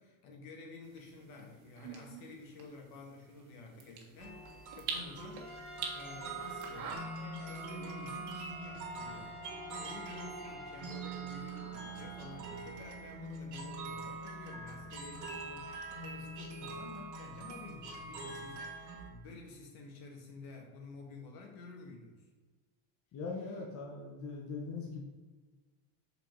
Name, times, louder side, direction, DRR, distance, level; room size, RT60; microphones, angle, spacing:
voice 1, 0.0-5.5 5.9-9.4 9.7-22.3, left 3 dB, 60° left, 1 dB, 1.7 m, -51 dB
sound 1, 0.8-7.0, right 5 dB, 65° right, 1.6 m, -46 dB
sound 2, 4.2-19.1, right 3 dB, 45° right, 1.5 m, -44 dB
Trumpet, 5.4-12.7, left 1 dB, ahead, 1.0 m, -51 dB
voice 2, 23.1-25.0, left 4 dB, 35° left, -1 dB, 1.0 m, -41 dB
5.6 x 4.3 x 4.5 m, 1.3 s
cardioid pair, 135°, 41 cm